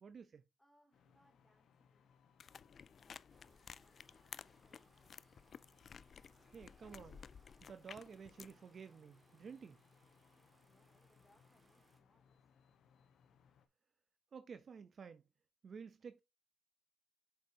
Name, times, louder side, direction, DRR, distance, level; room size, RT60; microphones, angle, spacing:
voice 1, 0.0-0.4 6.5-7.3 7.6-9.8 14.3-15.2 15.6-16.2, right 6 dB, 50° right, 0.6 m, -52 dB
voice 2, 0.6-5.3 10.6-12.5, left 1 dB, 5° left, 2.8 m, -75 dB
sound 1, 0.9-13.7, left 6 dB, 70° left, 1.1 m, -70 dB
sound 2, 2.4-8.6, left 6 dB, 50° left, 0.3 m, -55 dB
sound 3, 3.3-12.0, right 2 dB, 20° right, 1.7 m, -73 dB
7.7 x 5.9 x 2.7 m
cardioid pair, 90°, 0 cm